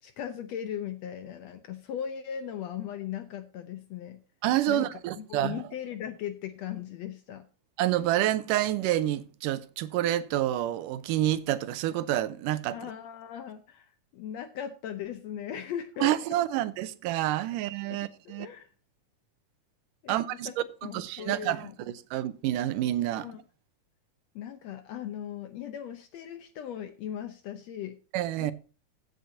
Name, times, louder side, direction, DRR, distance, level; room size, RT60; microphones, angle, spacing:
voice 1, 0.0-4.2 4.7-7.5 12.7-16.2 17.9-18.7 20.0-20.5 20.8-21.7 23.1-23.4 24.3-28.0 28.4-28.5, left 9 dB, 70° left, 1.6 m, -38 dB
voice 2, 4.4-5.6 7.8-12.8 16.0-18.5 20.1-20.5 20.9-23.3 28.1-28.5, right 13 dB, 80° right, 2.3 m, -28 dB
16.0 x 8.0 x 2.7 m
omnidirectional pair, 3.8 m